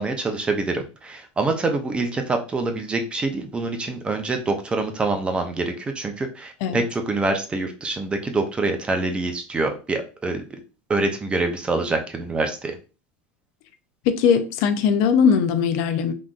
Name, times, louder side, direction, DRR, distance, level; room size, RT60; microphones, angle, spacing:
voice 1, 0.0-10.6 10.9-12.7, right 3 dB, 15° right, 0.5 m, -25 dB
voice 2, 14.1-16.1, left 6 dB, 60° left, 0.4 m, -20 dB
3.7 x 2.5 x 2.4 m
supercardioid pair, 130°, 6 cm